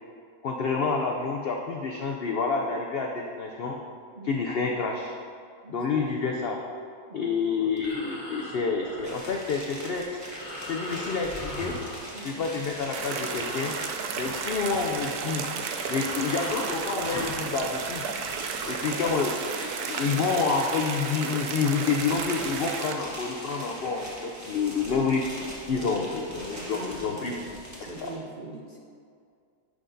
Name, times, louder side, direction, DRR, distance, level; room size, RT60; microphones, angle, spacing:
voice 1, 0.4-3.8 4.2-5.1 5.7-6.6 7.1-10.1 10.7-11.8 12.2-13.7 14.2-15.4 15.9-18.0 18.7-25.3 25.7-27.3 28.0-28.1, left 5 dB, 75° left, 1 dB, 0.5 m, -28 dB
Breathing, 7.6-12.6 12.9-17.6, left 1 dB, 60° left, 1.4 m, -40 dB
sound 1, 9.0-28.2, equal, 10° right, 1.1 m, -41 dB
sound 2, 12.9-22.9, right 6 dB, 80° right, 1.1 m, -33 dB
voice 2, 26.2-27.5 27.7-28.8, right 2 dB, 50° right, -2 dB, 0.6 m, -43 dB
10.0 x 6.3 x 2.6 m, 2.3 s
omnidirectional pair, 1.6 m